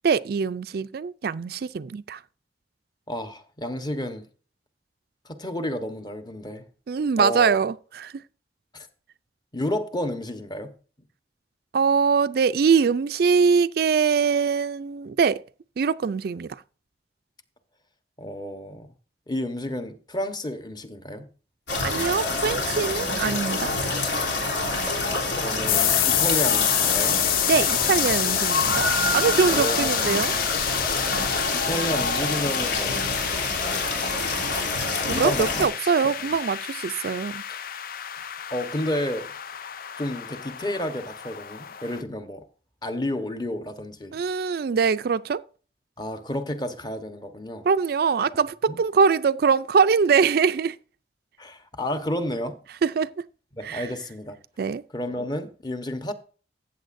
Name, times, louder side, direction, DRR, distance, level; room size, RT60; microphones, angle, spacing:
voice 1, 0.0-2.2 6.9-8.2 11.7-15.4 15.8-16.6 21.8-23.7 27.5-28.9 29.1-30.3 35.1-37.4 44.1-45.4 47.6-50.8 52.8-53.1 53.6-53.9 54.6-54.8, right 5 dB, 60° right, 0.4 m, -23 dB
voice 2, 3.1-4.2 5.2-6.6 7.2-7.6 8.7-8.9 9.5-10.7 18.2-18.9 19.3-21.3 25.3-27.2 29.5-29.9 31.5-33.1 35.1-35.7 36.2-36.3 37.5-37.6 38.5-39.3 40.0-42.4 42.8-44.2 46.0-47.6 48.7-48.8 51.4-52.6 53.5-54.4 54.9-56.1, left 1 dB, 25° left, 1.1 m, -31 dB
sound 1, 21.7-35.7, left 2 dB, 85° left, 3.4 m, -26 dB
sound 2, 25.7-42.0, left 12 dB, 55° left, 0.5 m, -28 dB
14.5 x 8.3 x 2.6 m
head